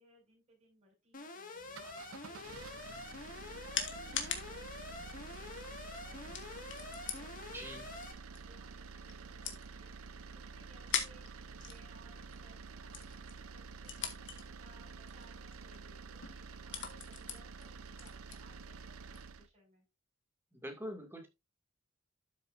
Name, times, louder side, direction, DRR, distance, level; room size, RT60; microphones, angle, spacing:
voice 1, 0.0-8.0 8.4-19.8, equal, 35° right, -3 dB, 6.4 m, -65 dB
Alarm, 1.1-8.1, left 3 dB, 40° left, 1.9 m, -47 dB
sound 1, 1.6-19.5, right 5 dB, 85° right, 0.7 m, -49 dB
sound 2, 2.9-19.3, left 7 dB, 60° left, 1.8 m, -45 dB
voice 2, 7.5-7.9 20.5-21.3, equal, 10° right, 3 dB, 2.4 m, -44 dB
12.5 x 6.9 x 2.6 m, 0.23 s
head